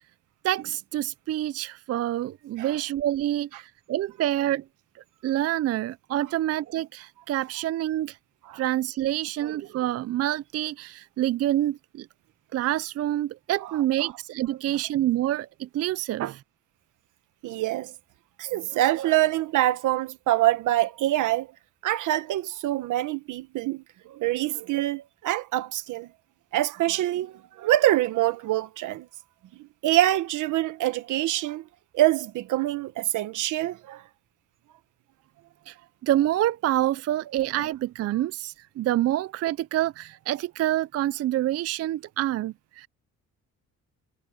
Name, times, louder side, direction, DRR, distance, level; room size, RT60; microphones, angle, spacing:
voice 1, 0.4-4.6 5.2-8.2 8.5-12.1 12.5-16.4 35.7-35.8 36.0-42.9, right 13 dB, 55° right, 0.4 m, -27 dB
voice 2, 17.4-17.9 18.4-21.5 21.8-26.1 26.5-29.1 29.5-31.6 31.9-34.0, right 14 dB, 90° right, 1.4 m, -25 dB
cardioid pair, 90°, 30 cm